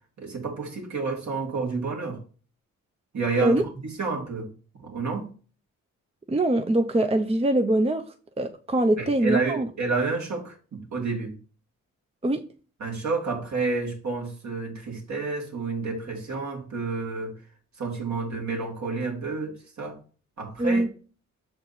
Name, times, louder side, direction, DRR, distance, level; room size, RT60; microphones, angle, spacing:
voice 1, 0.2-2.2 3.1-5.3 9.0-11.3 12.8-17.3 17.8-20.0 20.4-20.8, right 4 dB, 60° right, 2.4 m, -30 dB
voice 2, 6.3-8.0 8.4-9.7 12.2-12.4 20.6-20.9, right 1 dB, 20° right, 0.7 m, -23 dB
6.6 x 4.4 x 4.2 m
cardioid pair, 65°, 32 cm